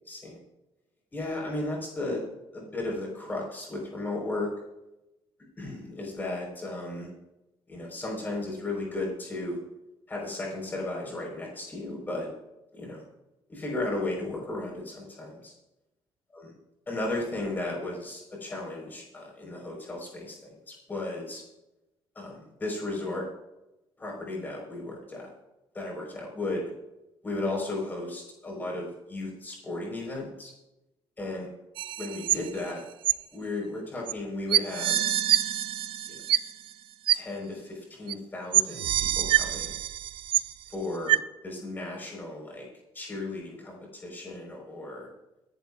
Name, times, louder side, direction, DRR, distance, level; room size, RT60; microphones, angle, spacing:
voice 1, 0.1-0.4 1.1-2.2 2.5-4.5 5.6-7.1 7.7-9.6 10.1-12.3 12.7-13.0 13.5-15.5 16.3-16.5 16.9-21.4 22.1-23.2 24.0-25.3 25.7-26.6 27.2-30.5 31.2-31.5 32.0-32.8 33.3-35.1 36.1-36.2 37.1-39.8 40.7-41.2 41.4-42.6 42.9-45.1, left 2 dB, 20° left, -2 dB, 4.3 m, -35 dB
sound 1, 31.8-32.7 33.0-33.1 34.1-34.2 34.5-36.7 37.1-37.2 38.1-38.2 38.5-40.7 41.1-41.2, right 13 dB, 60° right, 0.4 m, -25 dB
25.5 x 11.0 x 2.4 m, 0.95 s
cardioid pair, 175°, 10 cm